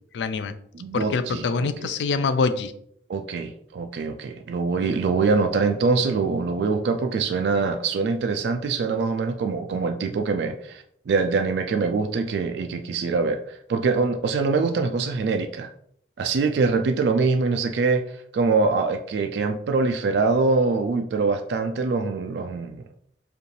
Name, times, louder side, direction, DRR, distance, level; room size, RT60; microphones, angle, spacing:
voice 1, 0.1-0.5 0.9-2.7, left 4 dB, 85° left, 12 dB, 0.4 m, -25 dB
voice 2, 0.7-1.9 3.1-15.7 16.2-22.8, right 4 dB, 75° right, 6 dB, 0.3 m, -24 dB
4.9 x 2.5 x 3.2 m, 0.68 s
head